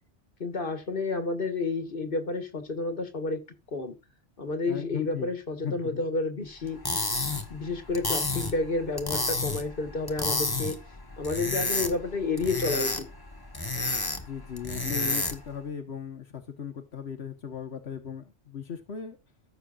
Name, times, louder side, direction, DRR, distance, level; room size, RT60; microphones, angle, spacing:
voice 1, 0.4-3.4 3.7-3.9 4.4-6.8 7.5-10.8 11.2-13.1, left 3 dB, 55° left, 2.0 m, -30 dB
voice 2, 4.7-5.3 5.6-6.0 14.2-19.2, left 7 dB, 85° left, 1.5 m, -37 dB
sound 1, 6.7-15.5, left 2 dB, 20° left, 1.3 m, -31 dB
15.0 x 6.7 x 2.5 m
omnidirectional pair, 1.1 m